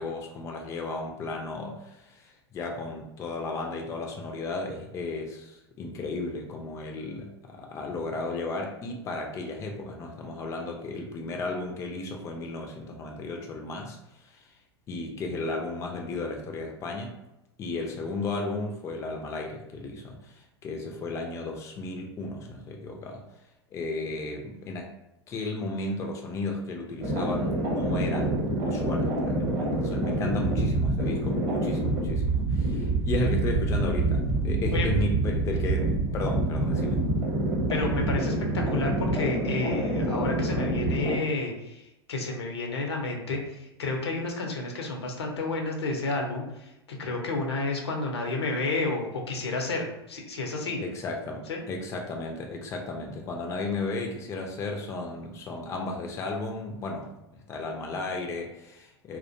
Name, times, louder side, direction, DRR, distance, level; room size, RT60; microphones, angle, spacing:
voice 1, 0.0-14.5 14.9-17.2 17.6-23.2 23.7-24.9 25.3-28.4 28.7-37.0 50.8-59.2, left 3 dB, 20° left, 1 dB, 0.4 m, -34 dB
sound 1, 27.0-41.1, right 2 dB, 35° right, 0.8 m, -27 dB
voice 2, 37.7-50.8 51.5-51.6, left 3 dB, 70° left, 1 dB, 0.6 m, -31 dB
2.4 x 2.1 x 2.6 m, 0.91 s
figure-of-eight pair, 90°, 14 cm